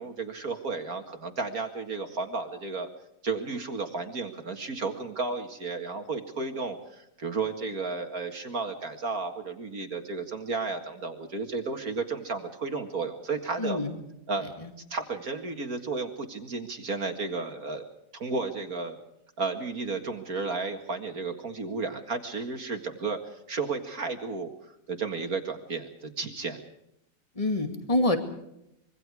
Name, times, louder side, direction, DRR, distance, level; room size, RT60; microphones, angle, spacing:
voice 1, 0.0-2.9 3.2-13.8 14.3-14.5 14.9-17.8 18.1-19.0 19.4-24.5 24.9-26.6, right 4 dB, 50° right, 5 dB, 2.2 m, -33 dB
voice 2, 13.6-14.0 14.4-14.7 27.4-28.2, left 2 dB, 20° left, 6 dB, 2.5 m, -27 dB
25.5 x 23.0 x 4.8 m, 0.81 s
omnidirectional pair, 1.9 m